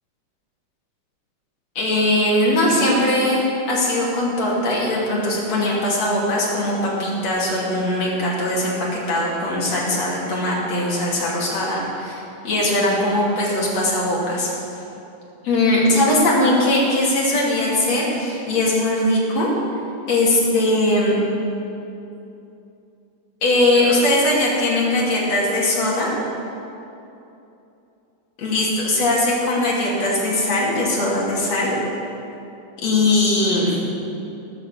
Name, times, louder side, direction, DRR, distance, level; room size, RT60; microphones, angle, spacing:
voice 1, 1.8-6.7 7.0-14.5 15.4-19.5 20.1-21.1 23.4-26.1 28.4-31.8 32.8-33.7, left 1 dB, 55° left, -5 dB, 3.8 m, -20 dB
19.0 x 6.4 x 6.7 m, 2.8 s
omnidirectional pair, 3.8 m